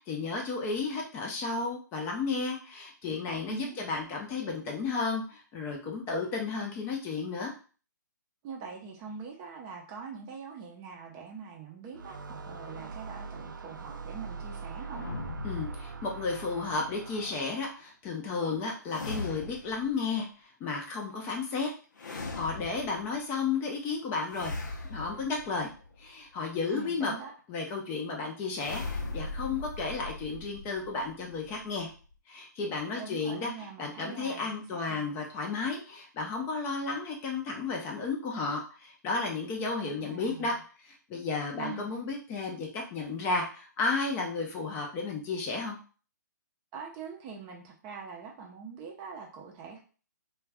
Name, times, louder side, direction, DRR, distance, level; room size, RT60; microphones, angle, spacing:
voice 1, 0.1-7.5 15.4-21.7 22.0-24.5 24.9-25.7 26.0-27.1 27.5-31.9 32.3-33.5 33.8-40.5 40.8-45.8, left 4 dB, 20° left, 1 dB, 0.5 m, -33 dB
voice 2, 8.4-15.1 26.7-27.3 33.0-35.1 40.0-40.6 41.5-41.9 46.7-49.8, right 6 dB, 25° right, 1 dB, 0.5 m, -43 dB
sound 1, 11.9-17.7, right 4 dB, 90° right, 0.4 m, -42 dB
sound 2, 14.9-16.4 18.9-19.9 22.0-23.2 24.3-26.1 28.6-32.1, left 3 dB, 80° left, 0.7 m, -39 dB
2.3 x 2.2 x 3.4 m, 0.38 s
hypercardioid pair, 140°, 10 cm